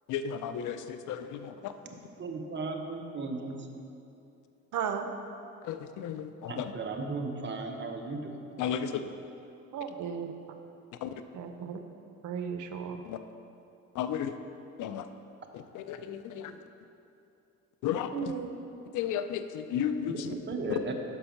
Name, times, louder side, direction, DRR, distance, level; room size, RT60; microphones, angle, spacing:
voice 1, 0.1-1.7 5.6-6.7 8.6-9.1 11.0-11.1 13.0-13.2 13.9-14.3 14.8-15.1 15.5-16.6 17.8-18.3 18.9-20.3 20.7-20.8, left 9 dB, 80° left, 10 dB, 0.5 m, -34 dB
voice 2, 2.2-3.7 6.5-8.4 20.0-20.9, right 3 dB, 40° right, 4 dB, 0.9 m, -36 dB
voice 3, 4.7-5.1 9.7-10.3 11.3-11.8 12.2-13.0 18.1-18.5, right 7 dB, 75° right, 6 dB, 0.7 m, -35 dB
6.2 x 5.4 x 5.8 m, 2.7 s
cardioid pair, 90°, 30 cm